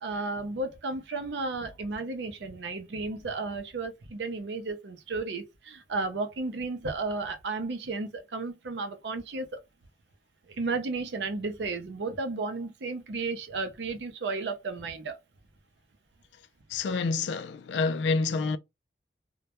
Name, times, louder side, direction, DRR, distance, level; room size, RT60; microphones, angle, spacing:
voice 1, 0.0-9.6 10.5-15.2, right 3 dB, 80° right, 0.5 m, -33 dB
voice 2, 16.7-18.6, left 4 dB, 85° left, 0.3 m, -28 dB
2.2 x 2.1 x 2.8 m
head